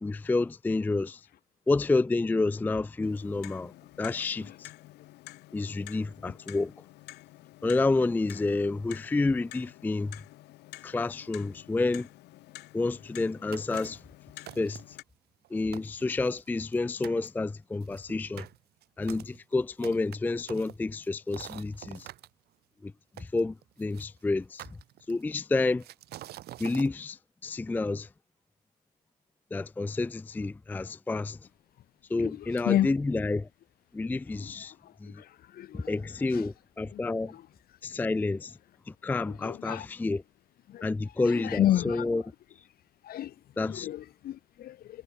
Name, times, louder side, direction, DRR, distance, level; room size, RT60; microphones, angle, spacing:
voice 1, 0.0-1.3 1.7-3.7 4.0-4.7 5.5-6.7 7.6-10.2 10.8-12.1 12.7-14.0 14.6-15.0 15.5-18.5 19.0-22.1 22.8-22.9 23.2-24.6 25.1-25.8 26.6-28.1 29.5-31.4 32.1-33.5 33.9-34.7 35.0-35.2 35.7-37.3 37.8-38.6 38.9-40.2 40.8-42.2 43.6-43.9, left 3 dB, 10° left, 0.4 m, -29 dB
Clock, 3.0-15.0, left 18 dB, 85° left, 4.4 m, -50 dB
sound 1, 13.5-14.1 14.5-15.0 15.4-15.5 15.7-16.8 17.0-17.3 17.8-22.3 23.2-24.1 24.6-25.3 25.8-26.9, right 14 dB, 70° right, 3.2 m, -46 dB
voice 2, 32.2-32.9 34.3-36.0 36.3-36.5 36.9-37.0 37.3-37.5 39.3-39.9 40.7-40.9 41.2-42.0 43.0-43.4 43.7-45.0, left 12 dB, 65° left, 2.4 m, -32 dB
cardioid pair, 110°, 17 cm